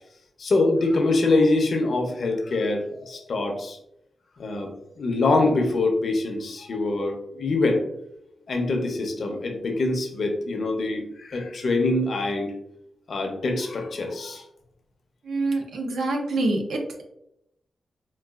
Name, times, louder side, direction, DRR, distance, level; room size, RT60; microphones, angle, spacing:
voice 1, 0.4-3.8 4.4-4.7 5.0-7.8 8.5-12.5 13.1-14.4, left 2 dB, 55° left, 3 dB, 0.5 m, -24 dB
voice 2, 15.2-17.0, right 2 dB, 80° right, 2 dB, 0.6 m, -26 dB
3.8 x 2.2 x 2.3 m, 0.80 s
wide cardioid pair, 155°, 0 cm